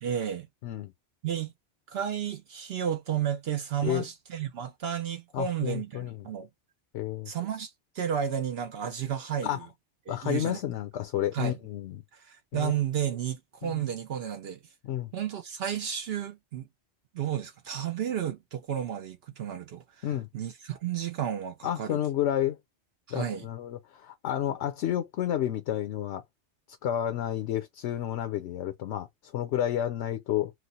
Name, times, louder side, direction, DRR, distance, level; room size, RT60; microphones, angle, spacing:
voice 1, 0.0-0.5 1.2-1.5 1.9-6.5 7.3-9.6 10.1-10.6 11.3-11.6 12.1-14.6 15.1-16.7 17.1-20.1 20.3-22.0 23.1-23.5, right 9 dB, 65° right, 0.8 m, -32 dB
voice 2, 5.3-6.3 6.9-7.3 9.4-9.6 10.1-12.0 12.5-12.7 13.6-13.8 14.8-15.1 20.0-20.3 21.6-22.6 23.1-26.2 26.8-30.5, left 11 dB, 85° left, 0.9 m, -30 dB
3.1 x 2.0 x 4.0 m
omnidirectional pair, 1.2 m